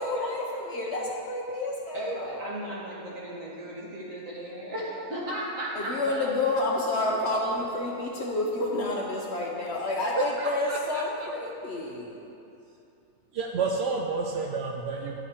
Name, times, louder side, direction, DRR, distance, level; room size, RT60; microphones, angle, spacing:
voice 1, 0.0-2.3 5.7-12.2, left 2 dB, 55° left, -2 dB, 0.9 m, -29 dB
voice 2, 1.9-6.2, right 1 dB, 60° right, -5 dB, 1.8 m, -35 dB
voice 3, 10.2-11.0 13.3-15.2, right 4 dB, 80° right, 0 dB, 0.5 m, -30 dB
11.0 x 4.0 x 4.4 m, 2.8 s
omnidirectional pair, 1.6 m